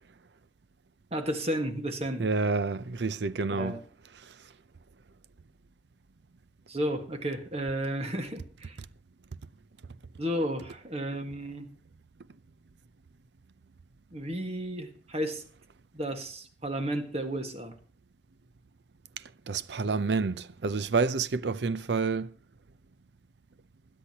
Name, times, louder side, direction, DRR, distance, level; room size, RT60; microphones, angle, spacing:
voice 1, 1.1-2.2 3.5-3.8 6.7-8.8 10.2-11.7 14.1-15.4 15.9-17.7, equal, 35° right, 1.6 m, -33 dB
voice 2, 2.2-3.7 19.5-22.3, right 4 dB, 75° right, 0.6 m, -28 dB
21.0 x 10.0 x 2.9 m
head